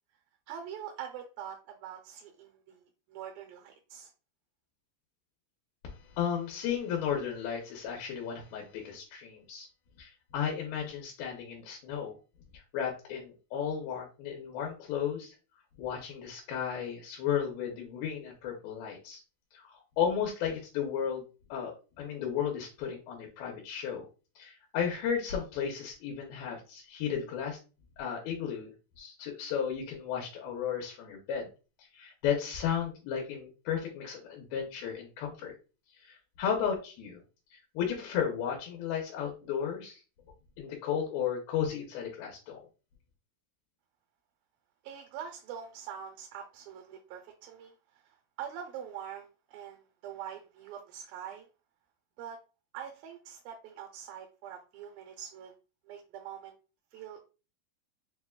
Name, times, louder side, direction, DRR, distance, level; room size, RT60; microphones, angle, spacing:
voice 1, 0.5-2.8 3.1-4.1 44.8-51.5 52.2-52.4 52.7-55.5 55.9-56.6 56.9-57.2, right 9 dB, 80° right, 3 dB, 2.2 m, -44 dB
voice 2, 5.8-9.7 10.0-12.2 12.5-15.4 15.8-19.2 19.5-21.2 21.5-24.1 24.4-27.6 28.0-31.5 31.9-35.5 36.0-37.2 37.5-40.0 40.6-42.7, left 8 dB, 90° left, 0 dB, 2.6 m, -34 dB
6.5 x 2.2 x 2.2 m, 0.33 s
omnidirectional pair, 4.2 m